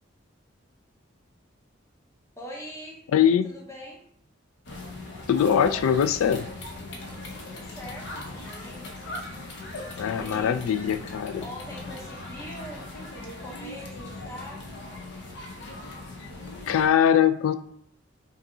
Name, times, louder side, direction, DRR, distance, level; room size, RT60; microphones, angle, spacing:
voice 1, 2.4-3.0 3.4-4.0 7.4-9.1 10.1-10.6 11.4-12.9 13.4-14.6, equal, 15° left, -2 dB, 0.8 m, -42 dB
voice 2, 3.1-3.5 5.3-6.5 10.0-11.4 16.7-17.5, left 8 dB, 90° left, 9 dB, 0.3 m, -22 dB
sound 1, 4.6-16.9, left 2 dB, 55° left, 0.6 m, -39 dB
5.3 x 2.6 x 2.7 m, 0.66 s
head